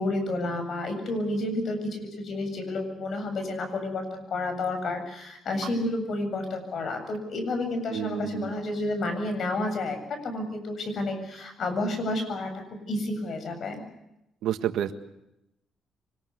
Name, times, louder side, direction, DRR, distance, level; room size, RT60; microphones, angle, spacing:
voice 1, 0.0-12.5 12.9-13.8, left 2 dB, 60° left, 7 dB, 7.6 m, -30 dB
voice 2, 7.9-8.5 14.4-14.9, right 11 dB, 80° right, 9 dB, 1.6 m, -29 dB
24.5 x 21.0 x 8.2 m, 0.84 s
cardioid pair, 90°, 0 cm